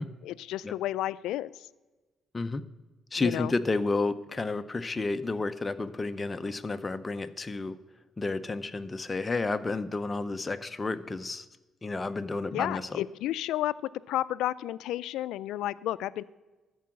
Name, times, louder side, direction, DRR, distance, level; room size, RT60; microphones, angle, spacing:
voice 1, 0.2-1.7 3.2-3.5 12.5-16.2, left 14 dB, 90° left, 18 dB, 0.3 m, -32 dB
voice 2, 3.1-7.8 8.2-11.5 11.8-13.0, left 3 dB, 25° left, 10 dB, 0.6 m, -31 dB
13.5 x 4.7 x 7.5 m, 1.2 s
cardioid pair, 90°, 0 cm